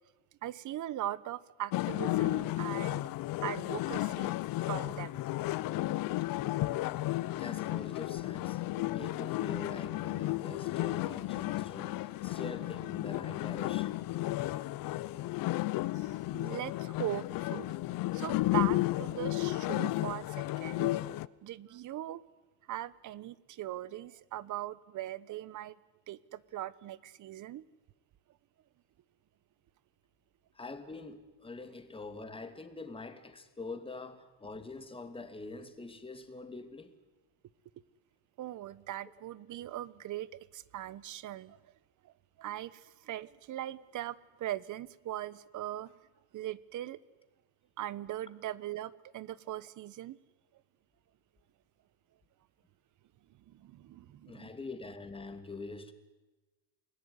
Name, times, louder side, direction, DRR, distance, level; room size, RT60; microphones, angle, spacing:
voice 1, 0.4-3.1 3.4-4.4 4.7-5.2 15.9-21.0 21.4-22.2 22.7-25.8 26.1-27.6 38.4-41.6 42.0-42.1 42.4-45.9 46.3-47.0 47.8-50.2 53.5-54.5, right 13 dB, 45° right, 1.2 m, -40 dB
sound 1, 1.7-21.3, left 17 dB, 55° left, 0.9 m, -33 dB
voice 2, 7.4-14.1 30.5-36.9 54.3-55.9, left 3 dB, 15° left, 2.7 m, -44 dB
29.0 x 20.5 x 9.8 m
cardioid pair, 135°, 41 cm